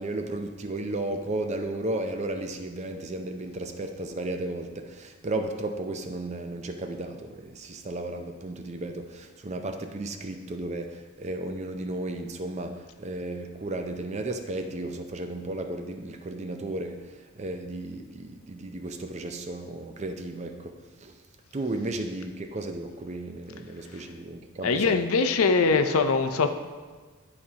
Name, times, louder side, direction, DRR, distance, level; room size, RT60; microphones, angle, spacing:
voice 1, 0.0-17.1 17.4-20.7 21.0-21.1 21.5-25.0, right 2 dB, 30° right, 6 dB, 0.5 m, -34 dB
voice 2, 24.6-26.5, left 4 dB, 80° left, 8 dB, 0.5 m, -22 dB
11.5 x 4.3 x 2.8 m, 1.4 s
head